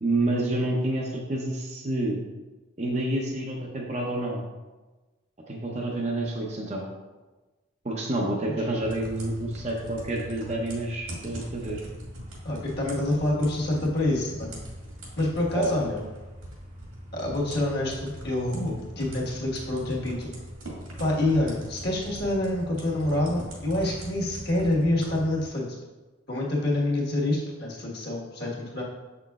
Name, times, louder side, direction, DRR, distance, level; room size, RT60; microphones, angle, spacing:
voice 1, 0.0-2.2 2.8-4.4 5.5-6.8 7.8-11.8 15.5-15.8, right 1 dB, 30° right, -2 dB, 0.6 m, -28 dB
sound 1, 8.8-25.5, equal, 80° right, 2.0 m, -41 dB
voice 2, 12.4-14.5 15.2-16.0 17.1-20.3 21.0-25.6 26.3-28.8, left 1 dB, 50° left, -3 dB, 1.4 m, -27 dB
7.4 x 5.9 x 2.4 m, 1.2 s
head